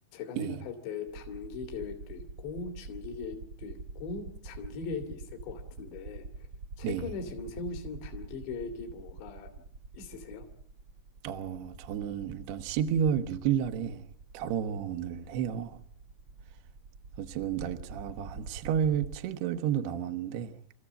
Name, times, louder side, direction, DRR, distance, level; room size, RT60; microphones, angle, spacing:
voice 1, 0.1-6.5 6.8-9.5 9.9-10.5, left 4 dB, 70° left, 4.5 m, -40 dB
sound 1, 1.1-19.2, right 3 dB, 45° right, 1.9 m, -46 dB
voice 2, 11.2-14.1 14.3-15.8 17.2-20.6, right 9 dB, 70° right, 2.8 m, -31 dB
28.0 x 14.5 x 8.8 m
omnidirectional pair, 5.4 m